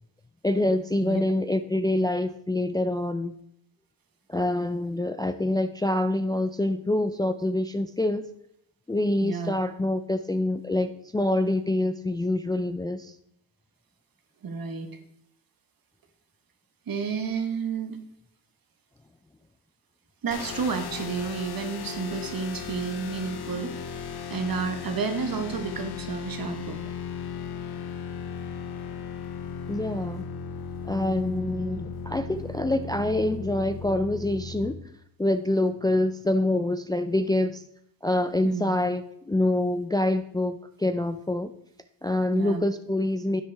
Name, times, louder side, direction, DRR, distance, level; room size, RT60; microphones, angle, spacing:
voice 1, 0.4-3.3 4.3-8.2 8.9-13.1 29.7-30.2 30.8-34.8 35.2-37.6 38.0-41.5 42.0-43.4, left 1 dB, 10° left, 9 dB, 0.4 m, -26 dB
voice 2, 9.2-9.6 14.4-14.9 16.9-18.0 20.2-23.8 24.0-26.8 38.4-38.7 42.3-42.6, right 5 dB, 50° right, 7 dB, 1.5 m, -31 dB
sound 1, 20.3-34.6, left 6 dB, 60° left, 1.0 m, -36 dB
10.0 x 7.9 x 3.5 m, 0.72 s
cardioid pair, 75°, 43 cm